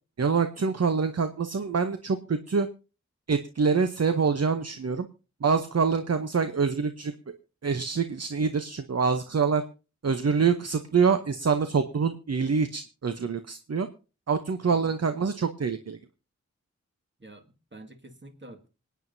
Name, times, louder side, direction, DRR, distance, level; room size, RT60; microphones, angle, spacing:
voice 1, 0.2-2.7 3.3-5.1 5.4-7.1 7.6-9.6 10.0-13.9 14.3-16.0, right 5 dB, 60° right, 0.8 m, -25 dB
voice 2, 17.2-18.7, right 1 dB, 40° right, 2.0 m, -48 dB
26.5 x 9.3 x 2.7 m
wide cardioid pair, 65°, 29 cm